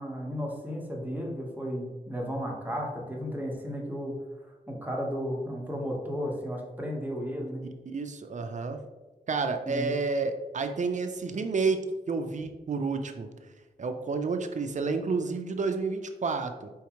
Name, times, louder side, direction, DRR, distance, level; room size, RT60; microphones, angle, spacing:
voice 1, 0.0-4.2 4.7-7.7 9.7-9.9, equal, 10° right, -1 dB, 1.2 m, -34 dB
voice 2, 7.9-8.8 9.3-11.8 12.1-13.3 13.8-16.7, right 4 dB, 45° right, 7 dB, 0.5 m, -30 dB
4.6 x 3.5 x 3.0 m, 1.2 s
cardioid pair, 65°, 17 cm